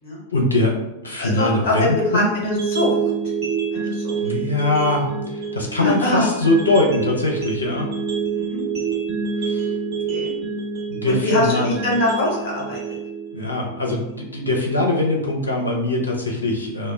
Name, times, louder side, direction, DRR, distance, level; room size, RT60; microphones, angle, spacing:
voice 1, 0.3-0.8 1.0-2.3 4.2-7.9 9.4-9.7 10.9-11.8 13.3-16.9, left 2 dB, 80° left, -1 dB, 0.6 m, -22 dB
voice 2, 1.2-2.9 3.7-4.2 5.8-6.3 8.3-8.6 10.1-10.3 11.0-12.8, left 1 dB, 50° left, -4 dB, 1.0 m, -23 dB
sound 1, 2.4-14.4, right 5 dB, 35° right, 1.1 m, -27 dB
2.2 x 2.0 x 3.3 m, 0.93 s
figure-of-eight pair, 90°, 0 cm